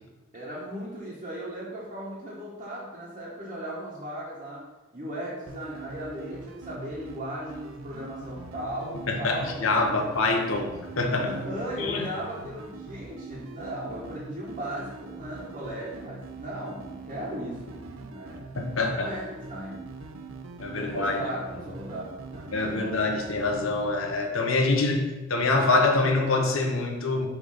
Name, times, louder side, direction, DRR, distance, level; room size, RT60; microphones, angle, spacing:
voice 1, 0.3-4.6 4.9-10.0 11.2-17.8 18.1-18.4 18.7-19.9 20.7-23.0, equal, 35° right, -9 dB, 1.2 m, -37 dB
sound 1, 5.5-24.1, right 3 dB, 85° right, 0.5 m, -43 dB
voice 2, 9.1-11.3 11.8-12.0 18.5-19.1 20.6-21.2 22.5-27.3, left 3 dB, 90° left, 2 dB, 0.9 m, -25 dB
5.7 x 3.4 x 4.9 m, 1.1 s
head